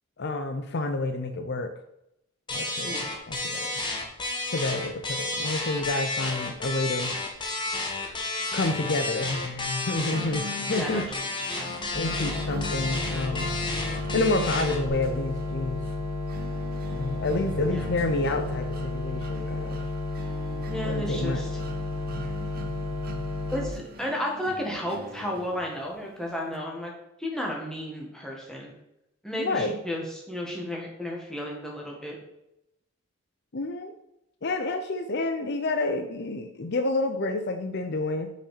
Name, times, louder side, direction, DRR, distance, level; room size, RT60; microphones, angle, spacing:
voice 1, 0.2-1.7 2.5-3.7 4.5-7.1 8.0-8.1 8.5-11.1 11.4-11.6 11.9-13.5 14.1-15.8 16.9-19.8 20.5-21.4 29.4-29.8 33.5-33.9 34.4-38.3, left 2 dB, 50° left, 7 dB, 0.6 m, -29 dB
sound 1, 2.5-14.9, left 2 dB, 20° left, 1.3 m, -32 dB
sound 2, 10.1-26.1, equal, 45° right, 0.8 m, -43 dB
voice 2, 10.7-11.0 11.5-11.7 17.6-17.8 20.6-21.5 23.5-26.9 27.2-28.7 29.2-32.2, equal, 5° left, -2 dB, 1.8 m, -33 dB
sound 3, 11.9-23.7, left 2 dB, 30° right, 2.4 m, -32 dB
6.0 x 5.7 x 6.6 m, 0.85 s
head